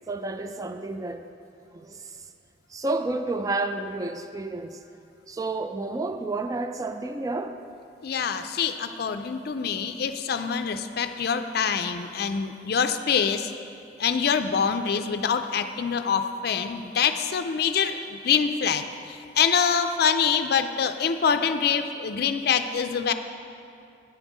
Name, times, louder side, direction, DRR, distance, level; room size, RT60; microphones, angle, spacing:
voice 1, 0.1-1.2 1.7-2.2 2.7-4.8 5.3-7.6, right 2 dB, 20° right, 8 dB, 0.4 m, -30 dB
voice 2, 8.0-13.5 14.0-23.1, left 6 dB, 60° left, 9 dB, 0.4 m, -25 dB
9.3 x 5.4 x 7.2 m, 2.6 s
head